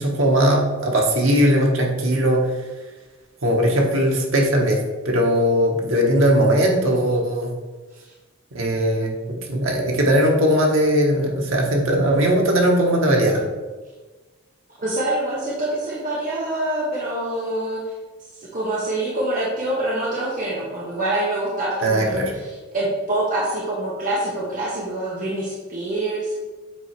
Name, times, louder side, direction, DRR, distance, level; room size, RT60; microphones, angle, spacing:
voice 1, 0.0-2.5 3.4-7.5 8.5-9.2 9.5-13.4 21.8-22.3, equal, 85° right, 0 dB, 1.1 m, -19 dB
voice 2, 14.8-17.8 18.4-26.3, right 1 dB, 40° right, -5 dB, 1.0 m, -25 dB
7.6 x 2.9 x 4.5 m, 1.3 s
head